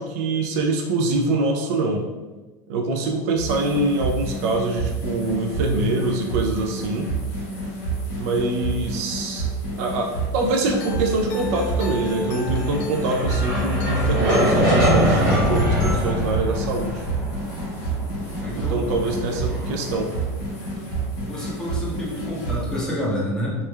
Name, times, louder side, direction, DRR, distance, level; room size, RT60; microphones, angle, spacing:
voice 1, 0.0-2.1 2.7-7.1 8.2-9.5 9.8-17.0 18.5-20.1, right 2 dB, 60° right, 1 dB, 0.3 m, -24 dB
sound 1, 3.4-22.8, right 3 dB, 90° left, 1.2 m, -29 dB
sound 2, 10.7-16.0, left 4 dB, 60° left, 0.5 m, -32 dB
sound 3, 12.3-20.7, equal, 30° right, 0.9 m, -24 dB
voice 2, 18.4-19.0 21.2-23.6, left 1 dB, 5° left, -6 dB, 0.5 m, -28 dB
3.0 x 2.1 x 2.2 m, 1.2 s
supercardioid pair, 165°, 10 cm